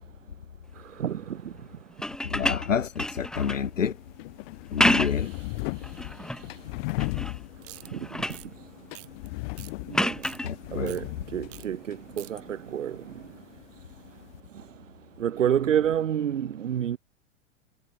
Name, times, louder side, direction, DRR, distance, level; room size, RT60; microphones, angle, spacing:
voice 1, 0.7-1.7 5.2-5.3 5.6-6.6 7.9-8.1 8.6-8.7 9.9-10.3 10.7-13.4 14.5-14.7 15.2-17.0, right 9 dB, 80° right, 1.5 m, -30 dB
sound 1, 1.9-3.7 4.6-5.3 5.8-6.5 7.0-7.4 7.8-8.5 9.9-10.5 12.2-12.4, left 1 dB, ahead, 0.9 m, -28 dB
voice 2, 2.2-4.0 4.7-5.3 10.4-10.9, left 7 dB, 90° left, 1.1 m, -28 dB
sound 2, 3.3-14.4, left 25 dB, 50° left, 3.1 m, -38 dB
sound 3, 7.6-7.9 8.3-8.5 8.9-9.3 9.6-9.7 10.0-10.4 10.9-11.0 11.5-11.7 11.9-12.3, right 21 dB, 40° right, 2.1 m, -45 dB
hypercardioid pair, 105°, 37 cm